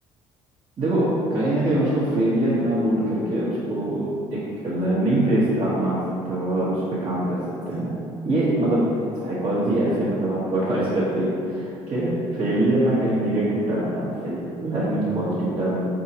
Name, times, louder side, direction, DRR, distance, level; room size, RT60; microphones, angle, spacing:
voice 1, 0.8-7.4 7.7-8.0 8.2-15.9, right 1 dB, 40° right, -9 dB, 1.1 m, -23 dB
4.1 x 3.6 x 2.8 m, 2.5 s
supercardioid pair, 80°, 13 cm